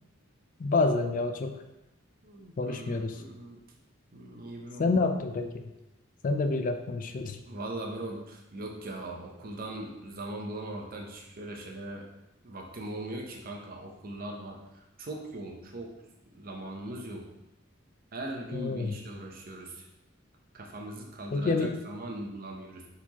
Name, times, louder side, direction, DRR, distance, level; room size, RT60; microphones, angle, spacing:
voice 1, 0.6-1.6 2.6-3.1 4.8-5.7 6.2-7.4 18.5-18.9 21.3-21.7, left 3 dB, 45° left, 6 dB, 0.4 m, -28 dB
voice 2, 2.2-3.6 4.1-4.9 7.5-12.1 12.4-15.9 16.2-17.3 18.1-19.9 20.5-22.9, right 1 dB, 45° right, 1 dB, 0.7 m, -40 dB
4.2 x 4.2 x 2.9 m, 0.92 s
head